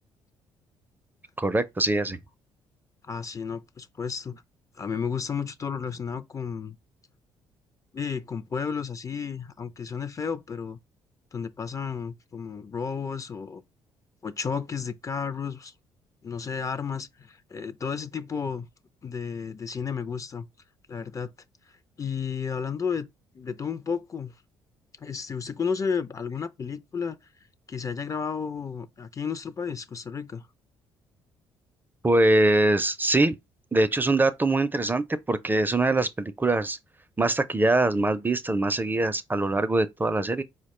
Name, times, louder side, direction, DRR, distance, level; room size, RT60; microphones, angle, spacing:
voice 1, 1.4-2.2 32.0-33.4 33.7-36.8 37.2-40.4, right 2 dB, 20° right, 0.5 m, -23 dB
voice 2, 3.0-4.4 4.8-6.8 7.9-10.8 11.3-13.6 14.2-15.7 16.2-18.7 19.0-20.5 20.9-21.3 22.0-23.1 23.3-24.4 25.0-27.2 27.7-30.5, left 6 dB, 30° left, 0.5 m, -32 dB
4.6 x 2.2 x 4.2 m
supercardioid pair, 70°, 10 cm